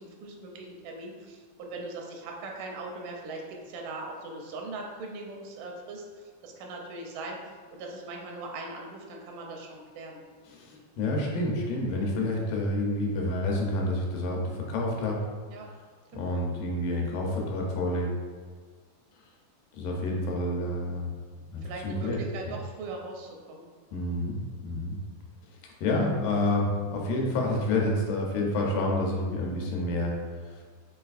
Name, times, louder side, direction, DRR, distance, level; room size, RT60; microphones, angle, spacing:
voice 1, 0.0-7.4 7.7-10.2 15.5-15.7 16.1-16.4 21.6-23.7, right 2 dB, 85° right, 1 dB, 2.2 m, -40 dB
voice 2, 10.5-15.3 16.1-18.1 19.7-21.1 21.5-22.2 23.9-25.0 25.8-30.2 30.4-30.6, left 1 dB, 85° left, -1 dB, 2.3 m, -29 dB
5.6 x 3.3 x 2.4 m, 1.5 s
omnidirectional pair, 3.7 m